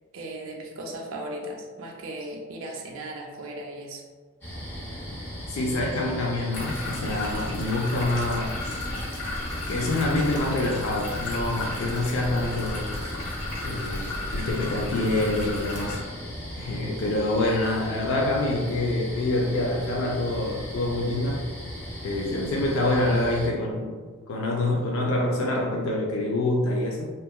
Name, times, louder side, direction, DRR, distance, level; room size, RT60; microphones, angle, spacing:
voice 1, 0.1-4.0, right 1 dB, 70° right, 0 dB, 0.4 m, -37 dB
sound 1, 4.4-23.5, equal, 10° left, 0.5 m, -37 dB
voice 2, 5.5-8.8 9.7-12.9 13.6-16.0 16.6-21.4 22.0-23.9 24.3-27.1, left 2 dB, 70° left, -1 dB, 0.3 m, -26 dB
sound 2, 6.5-16.0, left 2 dB, 90° left, 0.8 m, -34 dB
2.7 x 2.3 x 2.3 m, 1.5 s
head